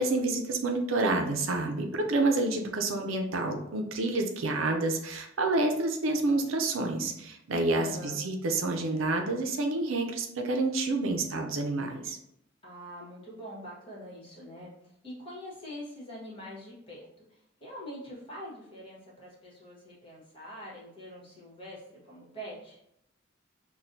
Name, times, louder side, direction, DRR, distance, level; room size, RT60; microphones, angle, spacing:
voice 1, 0.0-12.2, right 2 dB, 80° right, 3 dB, 0.5 m, -28 dB
voice 2, 7.7-8.2 12.6-14.7 15.0-17.1 17.6-22.8, equal, 25° left, -5 dB, 1.3 m, -44 dB
6.0 x 2.3 x 2.7 m, 0.76 s
head